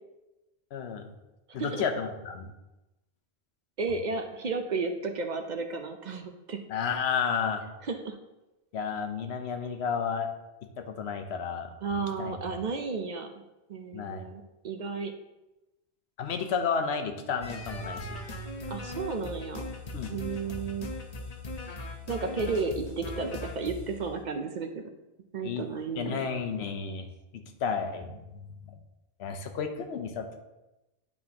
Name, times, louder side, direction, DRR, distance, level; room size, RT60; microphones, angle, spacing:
voice 1, 0.7-1.1 1.5-2.5 6.7-7.6 8.7-10.3 10.6-11.7 12.2-12.4 13.9-14.3 16.2-18.2 19.9-20.1 25.4-25.7 26.0-27.1 27.3-28.2 28.7-28.8 29.2-30.4, left 6 dB, 85° left, 6 dB, 1.0 m, -32 dB
voice 2, 3.8-6.6 7.8-8.2 11.8-13.3 13.7-15.1 18.7-19.7 20.1-20.9 22.1-24.8 25.3-26.3, right 4 dB, 55° right, 5 dB, 0.6 m, -33 dB
sound 1, 17.4-24.0, left 2 dB, 45° left, 0.7 m, -39 dB
9.4 x 4.3 x 2.8 m, 1.0 s
omnidirectional pair, 1.1 m